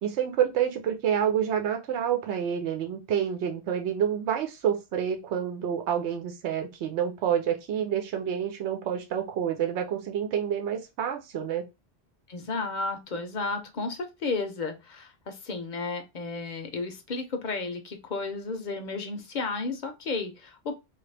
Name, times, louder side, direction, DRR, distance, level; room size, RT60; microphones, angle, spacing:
voice 1, 0.0-11.6, right 9 dB, 90° right, 5 dB, 0.9 m, -28 dB
voice 2, 12.3-20.7, left 3 dB, 50° left, 6 dB, 0.6 m, -33 dB
2.9 x 2.4 x 3.2 m, 0.24 s
omnidirectional pair, 1.1 m